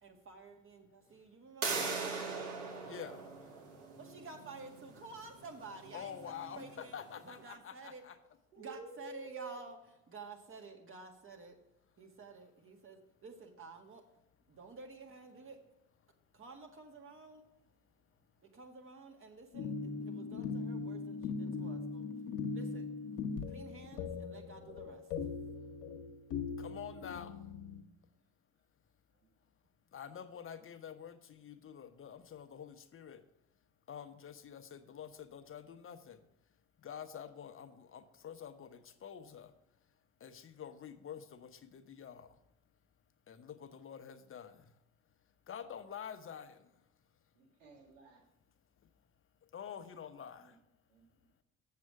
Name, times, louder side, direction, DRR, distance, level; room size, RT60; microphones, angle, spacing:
voice 1, 0.0-2.2 4.0-7.0 7.2-8.0 8.6-9.8 10.1-11.6 12.0-14.0 14.5-15.6 16.3-17.4 18.4-22.1 22.5-22.9 23.5-25.1, right 4 dB, 35° right, 3 dB, 1.8 m, -51 dB
sound 1, 1.6-7.2, right 4 dB, 70° right, 2.1 m, -41 dB
voice 2, 2.9-3.3 5.9-8.2 26.6-27.4 29.9-33.2 33.9-36.2 36.8-39.5 40.2-42.3 43.3-44.6 45.5-46.6 49.5-50.5, left 8 dB, 35° left, 9 dB, 1.0 m, -47 dB
voice 3, 8.5-9.6 29.2-29.3 47.3-48.2 50.4-50.6 50.9-51.2, right 4 dB, 90° right, 0 dB, 1.7 m, -50 dB
sound 2, 19.5-27.8, left 4 dB, 70° left, 1.2 m, -40 dB
7.6 x 7.4 x 4.7 m, 0.91 s
hypercardioid pair, 65°, 37 cm